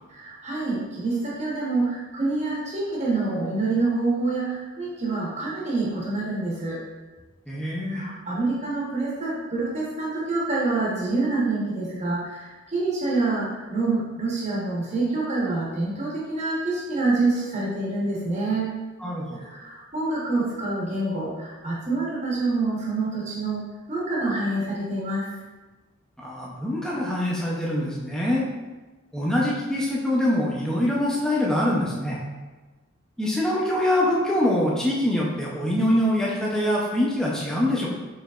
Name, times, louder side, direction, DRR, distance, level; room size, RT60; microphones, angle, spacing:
voice 1, 0.1-6.8 7.9-18.7 19.4-23.6 23.9-25.3, right 3 dB, 30° right, -6 dB, 1.0 m, -26 dB
voice 2, 7.5-8.0 19.0-19.4 26.2-28.5 29.1-32.2 33.2-37.9, left 1 dB, 5° left, -5 dB, 0.6 m, -24 dB
4.8 x 3.2 x 2.4 m, 1.2 s
head